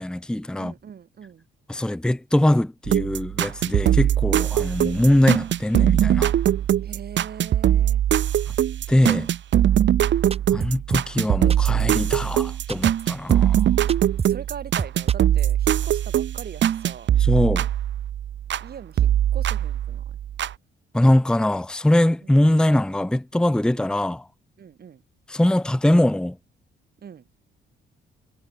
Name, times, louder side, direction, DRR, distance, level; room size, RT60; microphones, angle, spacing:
voice 1, 0.0-0.7 1.7-6.3 8.9-9.3 10.5-13.7 17.2-17.7 20.9-24.3 25.3-26.4, left 1 dB, 5° left, 0.8 m, -22 dB
voice 2, 0.6-1.4 6.8-8.0 9.7-10.0 14.3-17.1 18.6-20.2 22.2-22.3 23.7-23.8 24.6-25.0 27.0-27.2, right 7 dB, 50° right, 6.4 m, -41 dB
sound 1, 2.9-18.7 19.0-20.5, right 11 dB, 65° right, 2.4 m, -21 dB
sound 2, 10.3-11.2 11.5-11.8 12.1-12.2 12.4-12.5 12.7-13.0 13.3-13.6 13.9-14.5 14.8-15.5, right 5 dB, 30° right, 1.0 m, -29 dB
cardioid pair, 90°, 20 cm